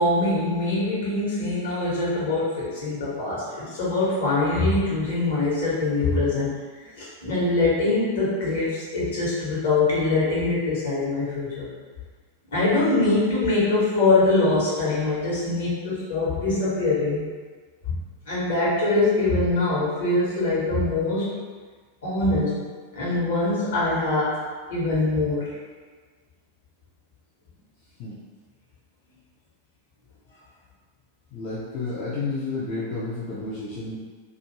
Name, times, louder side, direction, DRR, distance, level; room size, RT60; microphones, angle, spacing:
voice 1, 0.0-6.5 7.0-11.7 12.5-17.2 17.8-18.0 18.3-21.3 22.0-22.6 22.9-24.4 24.7-25.5, left 2 dB, 60° left, -7 dB, 1.1 m, -23 dB
voice 2, 31.3-34.0, left 3 dB, 40° left, -9 dB, 0.6 m, -31 dB
2.5 x 2.4 x 2.9 m, 1.5 s
figure-of-eight pair, 90°, 0 cm